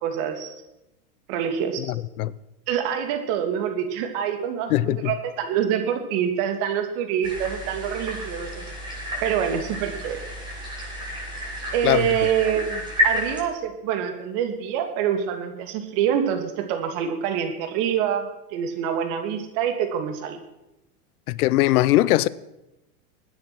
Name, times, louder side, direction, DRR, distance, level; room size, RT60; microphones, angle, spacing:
voice 1, 0.0-0.5 1.3-1.9 2.7-8.9 9.2-10.2 11.7-20.4, right 8 dB, 55° right, 2.9 m, -26 dB
sound 1, 7.2-13.4, equal, 10° right, 6.8 m, -30 dB
voice 2, 21.3-22.3, left 16 dB, 75° left, 0.8 m, -19 dB
21.0 x 9.6 x 6.3 m
hypercardioid pair, 115°, 45 cm